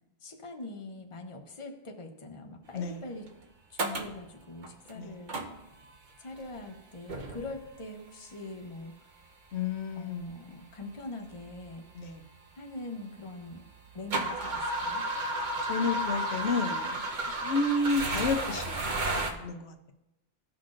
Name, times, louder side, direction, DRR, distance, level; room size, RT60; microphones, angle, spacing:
voice 1, 0.2-3.3 3.7-5.4 6.2-9.1 9.9-11.9 12.5-13.6 13.9-15.0, left 2 dB, 30° left, 3 dB, 0.9 m, -43 dB
sound 1, 3.3-3.4 3.8-4.2 4.6-4.9 5.3-5.9 6.4-6.7 7.1-7.8 8.7-8.8 9.7-9.8 10.2-10.3 11.0-11.1 11.3-13.2 13.6-19.3, right 2 dB, 50° right, 0.9 m, -32 dB
voice 2, 9.5-10.7 11.9-12.2 15.7-17.1 17.4-18.8 19.2-19.9, left 3 dB, 90° left, 6 dB, 1.0 m, -31 dB
16.0 x 5.9 x 2.5 m, 0.94 s
omnidirectional pair, 1.1 m